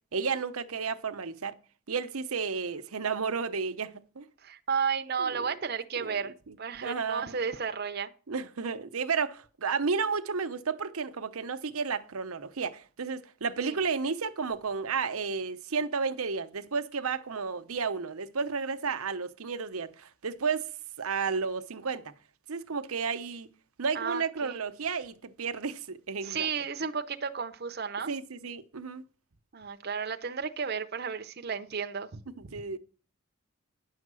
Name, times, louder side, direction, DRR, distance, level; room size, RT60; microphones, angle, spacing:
voice 1, 0.1-1.5 1.9-4.3 5.2-5.5 6.0-6.2 6.8-7.4 8.3-20.7 21.0-22.1 22.5-23.5 23.8-26.5 28.1-29.0 32.5-32.8, right 5 dB, 80° right, 0.9 m, -32 dB
voice 2, 4.4-8.1 23.9-24.6 26.2-28.1 29.5-32.6, right 6 dB, 45° right, 0.7 m, -33 dB
10.5 x 6.6 x 6.2 m
head